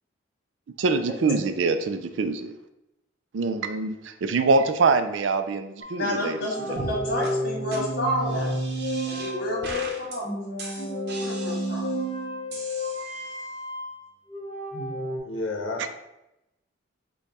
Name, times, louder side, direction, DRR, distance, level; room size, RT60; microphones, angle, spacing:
voice 1, 0.8-2.5 3.3-6.4 6.7-6.9, right 4 dB, 70° right, 9 dB, 0.4 m, -24 dB
sound 1, 5.8-15.2, equal, 30° left, 0.9 m, -31 dB
voice 2, 5.9-8.5 9.1-10.3 11.2-11.8, left 1 dB, 50° left, -2 dB, 1.5 m, -30 dB
sound 2, 6.8-7.0 7.2-7.3 7.7-7.8 8.2-9.3 9.6-10.2 10.6-12.0 12.5-13.5, right 2 dB, 55° right, 0.8 m, -39 dB
voice 3, 15.2-15.9, left 2 dB, 90° left, 2 dB, 0.8 m, -31 dB
5.1 x 2.3 x 4.2 m, 0.89 s
head